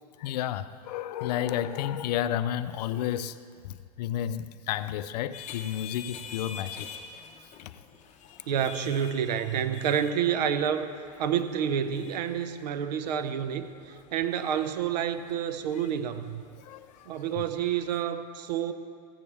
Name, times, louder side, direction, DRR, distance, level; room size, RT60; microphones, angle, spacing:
voice 1, 0.2-3.4 3.6-6.9 7.6-7.7 16.6-17.1 17.4-17.5, left 11 dB, 80° left, 0.5 m, -31 dB
sound 1, 5.3-18.0, left 7 dB, 35° left, 1.0 m, -48 dB
voice 2, 8.5-10.9 11.2-13.7 14.1-16.4 17.1-18.7, right 8 dB, 85° right, 0.7 m, -28 dB
15.0 x 8.5 x 3.4 m
supercardioid pair, 125°, 20 cm